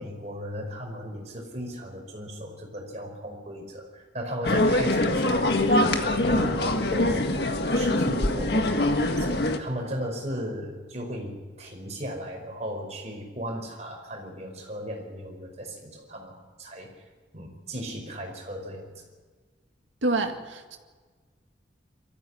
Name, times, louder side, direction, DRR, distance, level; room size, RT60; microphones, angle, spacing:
voice 1, 0.0-17.0 17.3-19.0, equal, 35° right, 2 dB, 5.2 m, -36 dB
sound 1, 4.4-9.6, left 1 dB, 60° left, 1.7 m, -23 dB
voice 2, 20.0-20.8, right 2 dB, 90° right, 4 dB, 2.0 m, -27 dB
23.0 x 14.5 x 9.9 m, 1.5 s
head